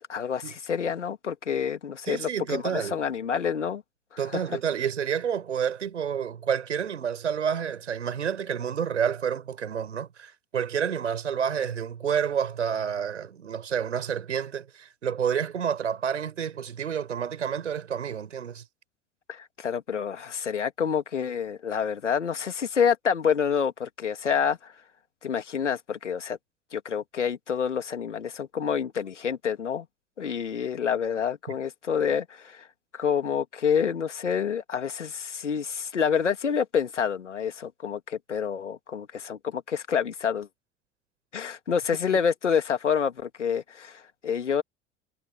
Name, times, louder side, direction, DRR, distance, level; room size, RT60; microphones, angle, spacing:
voice 1, 0.1-3.8 4.3-4.4 19.3-24.7 25.2-26.4 26.7-29.9 30.2-32.7 32.9-40.5 41.3-44.6, left 7 dB, 85° left, 3.0 m, -28 dB
voice 2, 2.1-3.0 4.2-18.6 42.1-42.2, right 7 dB, 85° right, 5.8 m, -29 dB
figure-of-eight pair, 65°, 35 cm